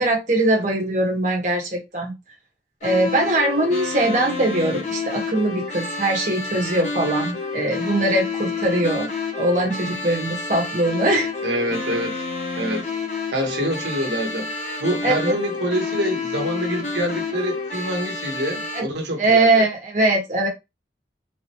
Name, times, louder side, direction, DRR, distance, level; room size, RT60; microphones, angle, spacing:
voice 1, 0.0-2.1 2.8-9.1 9.4-11.3 15.0-15.3 18.7-18.8 19.2-20.5, right 2 dB, 40° right, 1.5 m, -21 dB
sound 1, 2.8-18.8, left 4 dB, 40° left, 0.8 m, -29 dB
voice 2, 11.4-12.3 12.6-12.9 13.3-19.7, right 1 dB, 75° right, 1.3 m, -26 dB
4.0 x 3.1 x 3.0 m
head